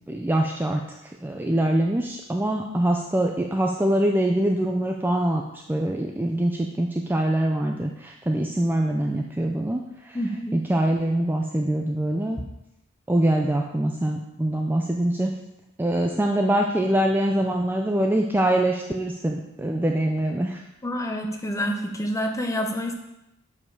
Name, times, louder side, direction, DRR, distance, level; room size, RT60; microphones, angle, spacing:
voice 1, 0.1-0.8 1.2-5.4 5.7-10.2 10.5-12.4 13.1-15.3 15.8-20.6, right 1 dB, 10° right, 2 dB, 0.4 m, -24 dB
voice 2, 10.1-10.6 20.8-22.9, equal, 15° left, 3 dB, 0.8 m, -28 dB
7.6 x 4.9 x 4.7 m, 0.89 s
head